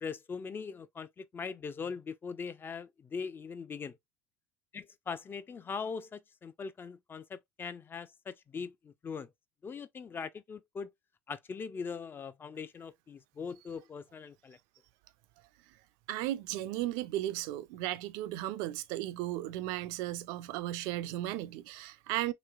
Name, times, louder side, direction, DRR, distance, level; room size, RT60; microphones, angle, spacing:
voice 1, 0.0-4.0 4.7-9.3 9.6-10.9 11.3-14.6, left 5 dB, 30° left, 0.4 m, -41 dB
voice 2, 16.1-22.3, right 14 dB, 70° right, 0.4 m, -35 dB
3.1 x 2.9 x 2.3 m
hypercardioid pair, 75°, 8 cm